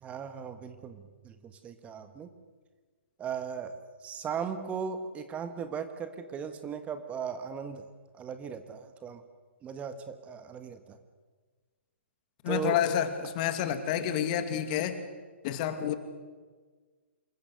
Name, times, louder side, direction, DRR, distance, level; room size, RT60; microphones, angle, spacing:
voice 1, 0.0-2.3 3.2-3.8 4.0-7.8 8.1-9.2 9.6-11.0 12.5-12.8, right 7 dB, 20° right, 9 dB, 1.7 m, -37 dB
voice 2, 12.4-15.0 15.4-16.0, left 9 dB, 40° left, 9 dB, 2.4 m, -29 dB
27.5 x 22.0 x 6.5 m, 1.4 s
figure-of-eight pair, 120°, 7 cm